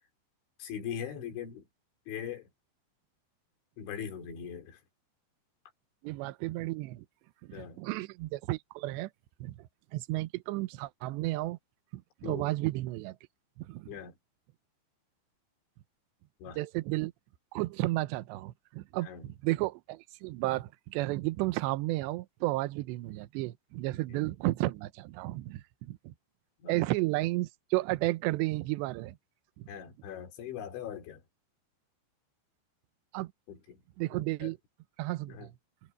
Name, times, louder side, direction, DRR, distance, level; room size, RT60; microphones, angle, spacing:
voice 1, 0.6-1.7 2.1-2.5 3.8-4.8 7.5-7.8 12.2-12.5 13.9-14.2 16.4-16.6 19.0-19.3 24.1-24.3 26.6-26.8 29.7-31.2 33.5-33.8 34.1-34.5 35.3-35.5, left 8 dB, 90° left, 5.7 m, -41 dB
voice 2, 6.0-7.1 7.4-9.1 9.4-11.6 11.9-13.2 13.6-13.9 16.6-17.1 17.5-26.1 26.7-29.2 29.6-29.7 33.1-33.3 34.0-34.6 35.0-35.5, right 19 dB, 80° right, 2.9 m, -33 dB
omnidirectional pair, 5.2 m